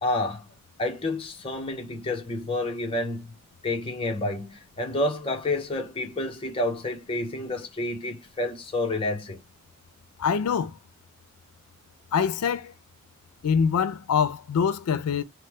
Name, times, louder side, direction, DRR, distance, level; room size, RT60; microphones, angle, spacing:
voice 1, 0.0-0.5 0.8-3.3 3.6-9.4, left 2 dB, 25° left, 0.6 m, -29 dB
voice 2, 10.2-10.8 12.1-12.7 13.4-15.2, left 6 dB, 90° left, 0.4 m, -24 dB
3.0 x 2.0 x 3.2 m
head